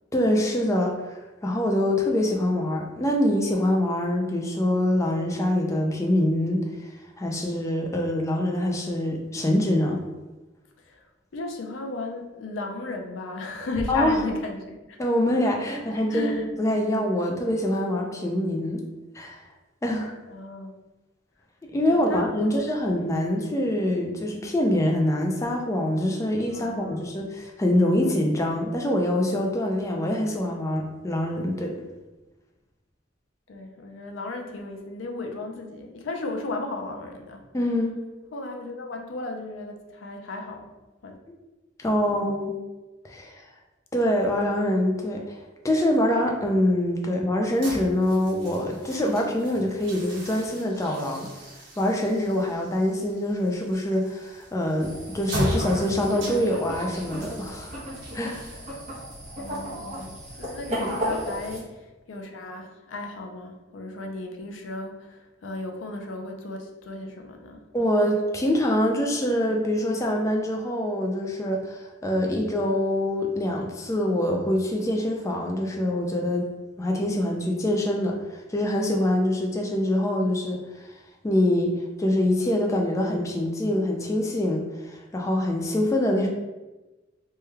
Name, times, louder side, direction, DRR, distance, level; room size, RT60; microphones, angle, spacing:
voice 1, 0.1-10.0 13.9-14.2 15.0-18.8 19.1-19.4 19.8-20.1 21.7-31.7 37.5-37.9 41.3-41.4 41.8-42.6 43.0-43.4 43.9-45.4 45.6-51.3 51.8-57.8 58.1-58.6 60.7-60.9 67.7-76.5 76.8-80.6 81.2-81.7 82.0-86.3, left 1 dB, 15° left, 0 dB, 0.3 m, -25 dB
voice 2, 11.3-15.0 15.7-16.4 20.3-20.8 21.9-22.8 26.5-27.1 33.5-37.5 38.3-40.7 41.0-41.2 42.0-42.3 59.4-67.6, left 2 dB, 85° left, 3 dB, 0.5 m, -35 dB
sound 1, 47.4-60.5, equal, 70° right, 0.9 m, -37 dB
sound 2, 54.8-61.6, equal, 40° right, 1.0 m, -35 dB
3.1 x 2.2 x 3.3 m, 1.1 s
head